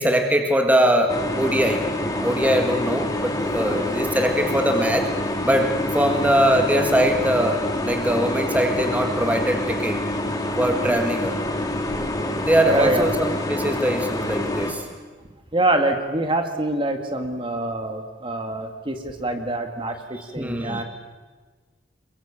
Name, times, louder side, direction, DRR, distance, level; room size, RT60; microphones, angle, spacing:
voice 1, 0.0-1.8 2.2-5.1 5.4-10.0 10.6-11.4 12.4-14.8 20.4-20.8, equal, 10° right, 4 dB, 1.8 m, -21 dB
sound 1, 1.1-14.7, left 1 dB, 20° left, 2.5 m, -26 dB
voice 2, 12.7-13.1 15.5-20.8, right 2 dB, 30° right, 6 dB, 2.0 m, -25 dB
27.5 x 22.5 x 7.4 m, 1.4 s
head